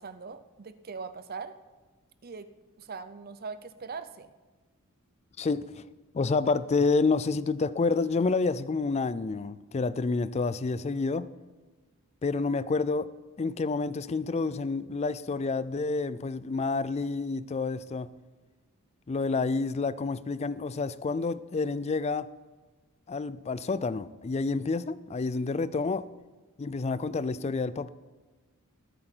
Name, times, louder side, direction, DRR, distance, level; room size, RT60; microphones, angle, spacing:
voice 1, 0.0-1.6 2.2-2.5 2.8-4.3, right 5 dB, 45° right, 0.6 m, -41 dB
voice 2, 5.4-5.8 6.1-11.3 12.2-13.1 13.4-18.1 19.1-22.3 23.1-26.1 26.6-27.9, left 4 dB, 30° left, 0.3 m, -29 dB
21.0 x 8.0 x 4.5 m
head